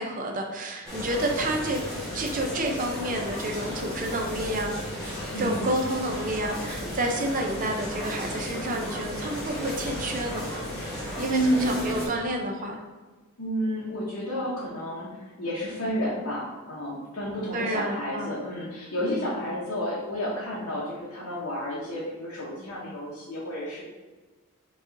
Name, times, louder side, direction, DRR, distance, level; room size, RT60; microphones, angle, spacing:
voice 1, 0.0-1.8 2.1-10.5 11.2-12.8 17.5-18.4, right 1 dB, 40° right, 2 dB, 0.6 m, -30 dB
sound 1, 0.9-12.1, left 1 dB, 5° left, 1.3 m, -34 dB
voice 2, 5.3-5.7 10.8-11.0 11.3-11.8 13.4-23.8, equal, 65° left, -8 dB, 0.9 m, -31 dB
5.3 x 2.4 x 3.9 m, 1.3 s
head